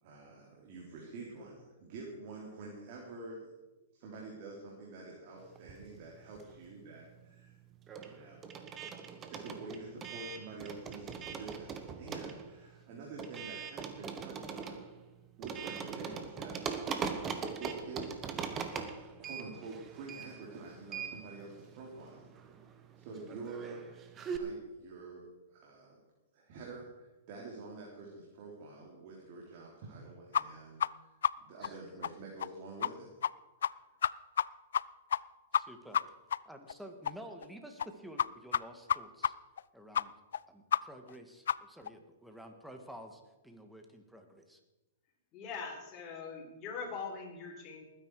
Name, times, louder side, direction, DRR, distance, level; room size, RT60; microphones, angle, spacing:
voice 1, 0.0-3.5 3.9-7.6 7.9-8.6 9.3-14.8 15.4-16.8 17.6-18.2 19.2-22.3 23.0-23.8 24.4-26.0 26.3-31.1 31.4-33.1, right 3 dB, 50° right, -2 dB, 3.5 m, -47 dB
sound 1, 5.6-6.8 7.1-24.4, right 6 dB, 25° right, 1.4 m, -42 dB
sound 2, 30.3-30.4 30.8-30.9 31.2-31.3 31.6-31.7 32.0-32.1 32.4-32.5 32.8-32.9 33.2-33.3 33.6-33.7 34.0-34.5 34.7-34.8 35.1-35.2 35.5-35.6 35.9-36.0 36.3-36.4 36.7-36.8 37.0-37.1 37.4-37.5 37.8-37.9 38.2-38.3 38.5-38.6 38.9-39.0 39.2-39.3 39.6-39.7 39.9-40.0 40.3-40.4 40.7-40.8 41.1-41.2 41.5-41.6 41.9-42.0, left 9 dB, 75° left, 0.4 m, -29 dB
voice 2, 35.5-36.0 36.4-39.4 39.7-40.1 40.5-44.6, equal, ahead, 5 dB, 1.8 m, -51 dB
voice 3, 45.3-47.8, left 5 dB, 30° left, -1 dB, 4.9 m, -42 dB
20.0 x 10.0 x 4.8 m, 1.1 s
hypercardioid pair, 130°, 0 cm